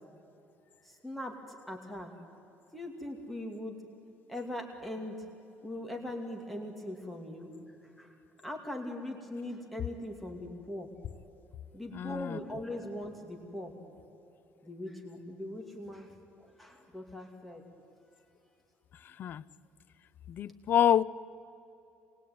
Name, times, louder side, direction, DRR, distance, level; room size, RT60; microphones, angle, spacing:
voice 1, 0.8-2.1 2.7-3.8 4.3-5.2 5.6-7.5 8.0-10.9 11.7-13.7 14.6-16.1 16.4-17.6, left 1 dB, ahead, 2 dB, 2.6 m, -40 dB
voice 2, 11.9-12.4 19.2-19.4 20.3-21.0, left 10 dB, 50° left, 17 dB, 0.6 m, -27 dB
27.0 x 21.0 x 9.4 m, 2.9 s
cardioid pair, 130°, 4 cm